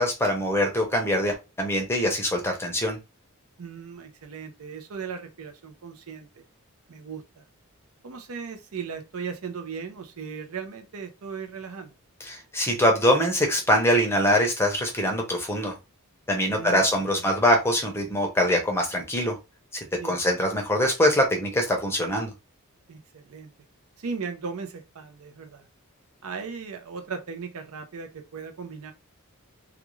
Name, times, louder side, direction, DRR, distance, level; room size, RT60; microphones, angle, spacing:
voice 1, 0.0-3.0 12.2-15.8 16.3-19.4 20.0-22.3, equal, 10° left, 0.6 m, -23 dB
voice 2, 3.6-6.4 6.9-7.4 8.0-11.9 16.5-16.8 17.1-17.2 20.0-20.2 22.9-23.5 24.0-25.7 26.2-28.9, right 5 dB, 75° right, 0.6 m, -37 dB
2.4 x 2.3 x 3.0 m
head